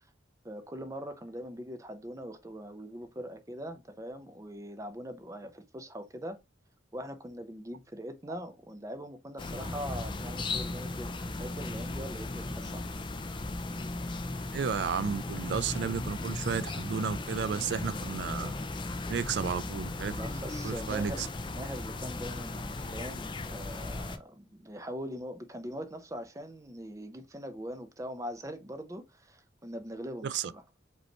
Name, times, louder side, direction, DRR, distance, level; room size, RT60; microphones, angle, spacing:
voice 1, 0.4-6.4 6.9-11.1 11.4-12.8 18.9-19.1 20.1-30.6, equal, 15° right, 0.7 m, -42 dB
sound 1, 9.4-24.2, left 2 dB, 25° left, 0.5 m, -36 dB
voice 2, 14.5-18.5 19.1-20.2 20.6-21.3 30.2-30.5, right 6 dB, 65° right, 0.3 m, -33 dB
5.2 x 3.1 x 2.9 m
head